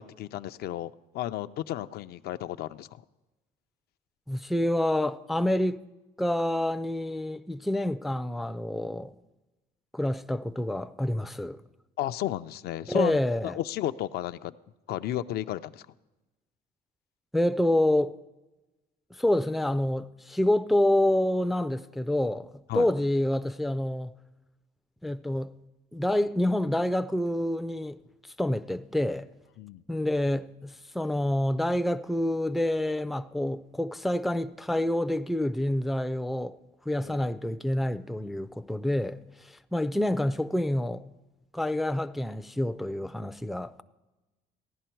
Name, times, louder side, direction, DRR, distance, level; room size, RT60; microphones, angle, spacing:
voice 1, 0.0-3.0 12.0-14.6 14.9-15.9 22.7-22.9 29.6-29.8 37.0-37.3, left 12 dB, 70° left, 0.4 m, -33 dB
voice 2, 4.3-5.8 6.2-9.1 9.9-11.6 12.9-13.5 17.3-18.2 19.2-24.1 25.0-25.5 25.9-28.0 28.4-29.3 29.9-36.6 36.9-41.0 41.5-43.8, left 1 dB, ahead, 0.3 m, -27 dB
15.5 x 11.0 x 4.5 m
cardioid pair, 110°, 17 cm